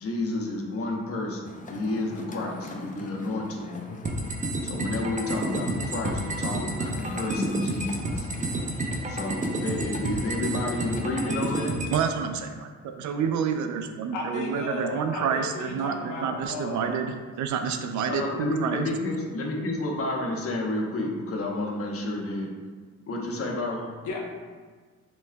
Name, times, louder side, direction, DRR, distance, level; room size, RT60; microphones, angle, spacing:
voice 1, 0.0-3.9 4.6-8.3 9.1-11.8 18.1-22.5 23.1-23.9, left 2 dB, 50° left, 0 dB, 0.9 m, -30 dB
sound 1, 1.4-11.6, left 2 dB, 25° left, 0.5 m, -38 dB
sound 2, 4.0-12.0, right 2 dB, 25° right, 0.6 m, -30 dB
voice 2, 11.9-18.9, right 6 dB, 70° right, 6 dB, 0.5 m, -28 dB
voice 3, 14.1-17.1 24.0-24.2, left 2 dB, 80° left, -1 dB, 1.0 m, -34 dB
7.1 x 3.1 x 2.2 m, 1.5 s
cardioid pair, 90°, 30 cm